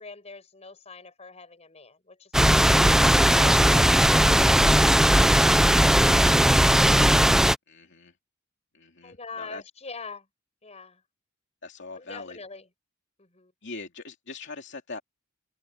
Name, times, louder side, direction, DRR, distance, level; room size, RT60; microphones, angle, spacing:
voice 1, 0.0-7.2 9.0-10.3 10.6-11.0 11.9-12.6 13.2-13.5, left 3 dB, 35° left, 5.9 m, -43 dB
sound 1, 2.3-7.6, equal, 5° right, 0.5 m, -18 dB
voice 2, 7.7-8.1 8.7-9.6 11.6-12.4 13.6-15.0, left 3 dB, 60° left, 2.8 m, -41 dB
head